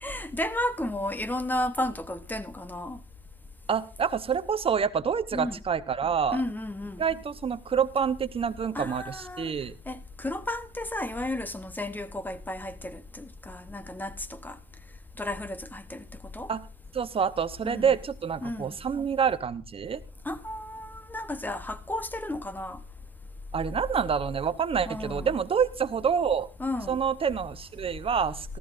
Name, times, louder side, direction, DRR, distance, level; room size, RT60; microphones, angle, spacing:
voice 1, 0.0-3.0 5.3-5.6 6.3-7.0 8.7-9.5 9.9-14.6 15.2-16.0 16.3-16.5 17.6-18.0 18.4-18.8 20.2-22.8 24.9-25.3 26.6-27.0, left 1 dB, 10° left, 0.9 m, -33 dB
voice 2, 3.7-6.4 7.0-9.7 16.5-16.6 16.9-20.0 23.5-26.5 26.9-28.6, right 7 dB, 35° right, 0.8 m, -27 dB
18.0 x 14.0 x 2.5 m
cardioid pair, 110°, 17 cm